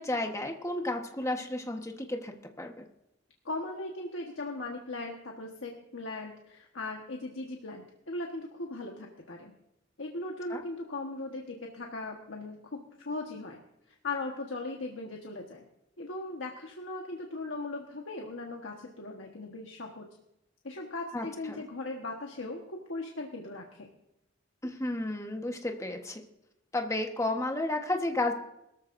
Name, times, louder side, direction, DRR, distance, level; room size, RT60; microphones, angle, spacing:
voice 1, 0.0-2.8 10.5-10.6 21.1-21.6 24.6-26.2 26.7-28.3, left 2 dB, 15° left, 3 dB, 1.3 m, -32 dB
voice 2, 3.4-9.5 10.0-13.6 14.0-15.6 16.0-20.0 20.6-23.9, left 2 dB, 85° left, 1 dB, 1.4 m, -38 dB
21.5 x 13.5 x 2.7 m, 0.85 s
head